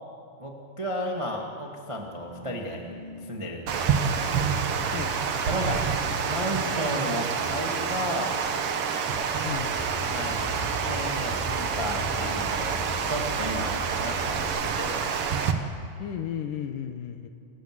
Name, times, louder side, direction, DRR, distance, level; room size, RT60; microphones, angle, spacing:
voice 1, 0.4-2.8 3.2-3.9 5.4-6.0 6.3-8.4 10.1-10.4 10.8-15.0, equal, 35° right, 0 dB, 0.4 m, -33 dB
sound 1, 1.9-8.1, equal, 55° right, 6.9 m, -49 dB
Water, 3.7-15.5, right 6 dB, 85° right, 1.2 m, -28 dB
Car / Engine starting, 9.0-14.4, right 1 dB, 10° right, 3.8 m, -38 dB
voice 2, 9.4-9.8 16.0-17.3, left 9 dB, 70° left, 7 dB, 2.3 m, -34 dB
28.0 x 14.0 x 7.6 m, 2.6 s
omnidirectional pair, 4.6 m